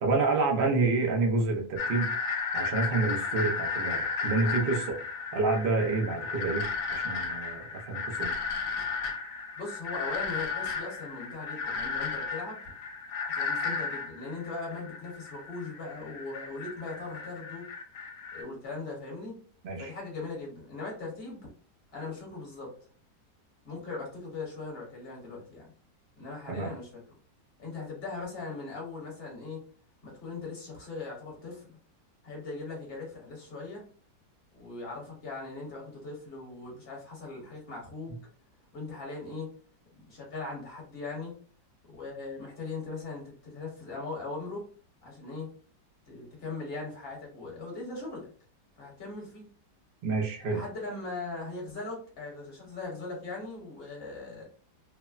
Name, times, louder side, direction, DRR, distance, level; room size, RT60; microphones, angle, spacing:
voice 1, 0.0-2.1 2.5-5.0 5.3-8.3 19.6-19.9 26.5-26.7 50.0-50.6, right 3 dB, 85° right, 0 dB, 0.5 m, -28 dB
sound 1, 1.8-18.4, left 5 dB, 75° left, 1.1 m, -34 dB
voice 2, 9.6-12.6 13.3-17.7 18.3-19.4 19.8-21.5 21.9-22.7 23.6-25.7 26.2-27.0 27.6-29.6 30.0-31.8 32.2-33.8 34.5-38.1 38.7-39.5 39.9-41.3 41.9-44.6 45.0-45.5 46.1-48.3 48.8-49.5 50.5-54.4, left 3 dB, 40° left, -2 dB, 1.1 m, -39 dB
3.2 x 2.1 x 2.3 m, 0.43 s
omnidirectional pair, 1.9 m